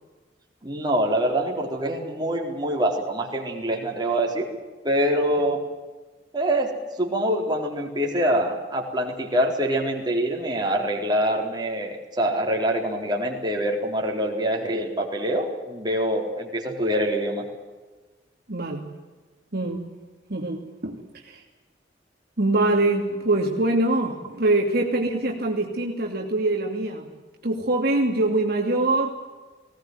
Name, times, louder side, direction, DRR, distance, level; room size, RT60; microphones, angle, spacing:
voice 1, 0.6-4.5 4.8-5.6 6.3-6.7 7.0-17.4, right 1 dB, 25° right, 0 dB, 4.1 m, -25 dB
voice 2, 18.5-18.8 19.5-19.8 20.3-21.0 21.3-21.4 22.4-27.1 27.4-29.1, right 2 dB, 60° right, 1 dB, 2.7 m, -23 dB
19.5 x 18.5 x 9.3 m, 1.3 s
head